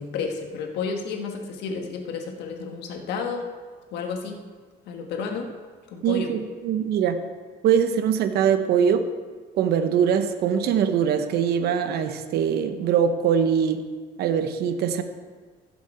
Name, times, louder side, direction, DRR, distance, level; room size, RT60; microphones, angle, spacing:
voice 1, 0.0-3.4 3.9-4.4 4.9-5.5 5.9-6.3, left 5 dB, 85° left, 3 dB, 1.5 m, -31 dB
voice 2, 6.0-7.2 7.6-9.0 9.6-13.8 14.2-15.0, right 8 dB, 70° right, 9 dB, 1.0 m, -22 dB
15.5 x 7.3 x 4.4 m, 1.5 s
cardioid pair, 110°, 17 cm